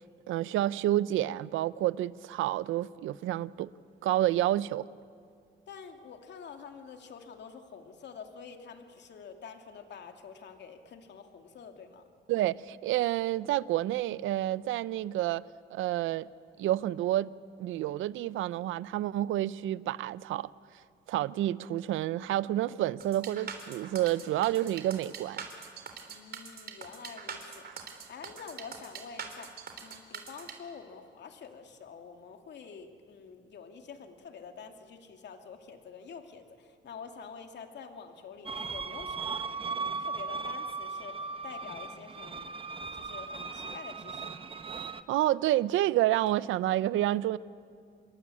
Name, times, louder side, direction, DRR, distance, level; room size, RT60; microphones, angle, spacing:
voice 1, 0.3-3.7 4.0-4.9 12.3-15.4 15.7-16.3 16.6-17.3 17.6-20.5 21.1-25.4 45.1-47.4, right 14 dB, 85° right, 0.6 m, -29 dB
voice 2, 5.7-12.0 26.1-42.5 42.9-44.4, left 6 dB, 60° left, 2.5 m, -47 dB
sound 1, 23.0-30.5, right 6 dB, 55° right, 3.8 m, -43 dB
sound 2, 38.5-45.0, right 4 dB, 25° right, 1.1 m, -37 dB
27.5 x 22.0 x 8.5 m
cardioid pair, 90°, 20 cm